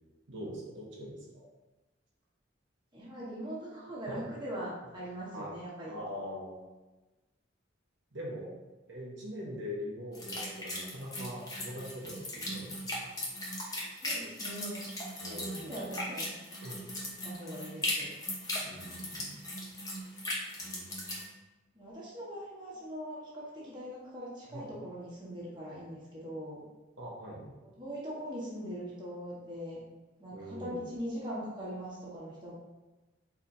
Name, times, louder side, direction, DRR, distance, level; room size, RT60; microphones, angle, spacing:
voice 1, 0.3-1.4 4.1-4.2 5.3-5.5 5.9-6.5 8.1-8.5 8.9-13.1 15.2-15.8 16.6-16.8 18.6-19.4 19.8-19.9 20.6-21.3 24.5-24.7 27.0-27.6 30.3-30.8, equal, 75° right, -4 dB, 1.0 m, -43 dB
voice 2, 2.9-5.9 14.0-14.9 15.3-16.3 17.2-18.1 21.7-26.6 27.8-29.8 30.2-32.5, equal, 25° right, -7 dB, 1.3 m, -41 dB
sound 1, 10.1-21.2, left 1 dB, 20° left, 0.9 m, -38 dB
4.5 x 4.0 x 2.7 m, 1.1 s
head